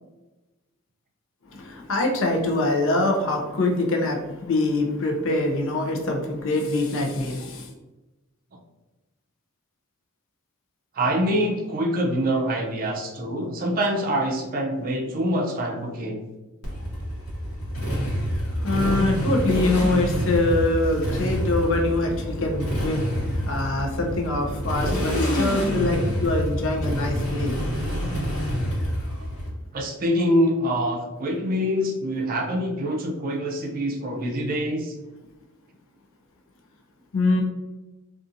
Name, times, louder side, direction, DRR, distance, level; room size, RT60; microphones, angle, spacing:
voice 1, 1.5-7.7 18.6-27.5 37.1-37.4, left 2 dB, 65° left, 2 dB, 0.5 m, -24 dB
voice 2, 10.9-16.3 29.7-35.0, equal, 40° right, 0 dB, 0.5 m, -25 dB
Motorcycle, 16.6-29.5, equal, 85° left, 1.0 m, -27 dB
2.5 x 2.4 x 2.6 m, 1.1 s
head